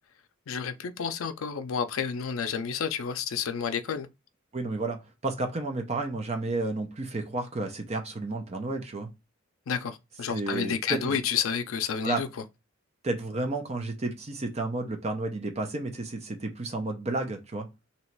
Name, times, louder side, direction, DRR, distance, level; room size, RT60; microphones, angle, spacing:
voice 1, 0.5-4.1 9.7-12.3, left 7 dB, 85° left, 0.4 m, -30 dB
voice 2, 4.5-9.1 10.3-11.2 12.0-12.2 13.0-17.7, right 2 dB, 30° right, 0.6 m, -31 dB
3.1 x 2.8 x 4.4 m
head